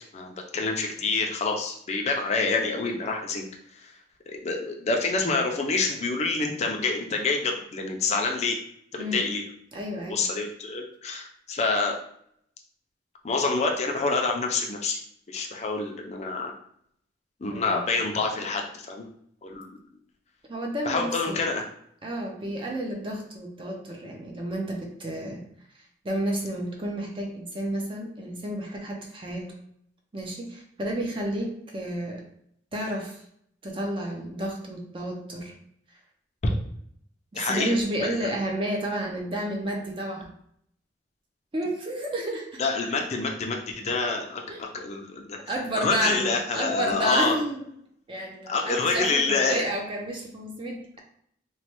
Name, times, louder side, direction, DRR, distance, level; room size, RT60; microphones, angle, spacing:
voice 1, 0.1-3.4 3.7-4.0 4.3-8.6 8.9-9.4 10.1-11.9 13.2-15.0 15.3-16.5 17.4-19.1 19.4-19.7 20.9-21.7 37.4-38.3 42.6-47.3 48.5-49.7, left 3 dB, 40° left, 2 dB, 0.4 m, -27 dB
voice 2, 9.7-10.2 17.5-17.8 20.5-21.5 22.0-25.4 26.0-29.5 30.1-32.2 32.7-33.2 33.6-35.5 37.3-40.3 41.5-42.6 44.5-44.7 45.5-47.6 48.1-51.0, right 1 dB, 30° right, 0 dB, 0.5 m, -31 dB
3.1 x 2.2 x 2.9 m, 0.68 s
head